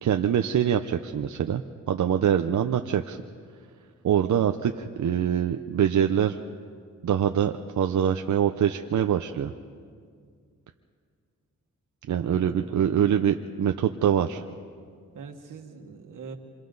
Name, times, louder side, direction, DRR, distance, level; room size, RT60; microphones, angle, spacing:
voice 1, 0.0-3.2 4.0-6.4 7.0-9.5 12.1-14.4, right 9 dB, 70° right, 6 dB, 0.7 m, -24 dB
voice 2, 12.2-12.8 15.1-16.4, right 5 dB, 90° right, 4 dB, 1.9 m, -43 dB
27.5 x 26.5 x 4.0 m, 2.1 s
cardioid pair, 95°, 31 cm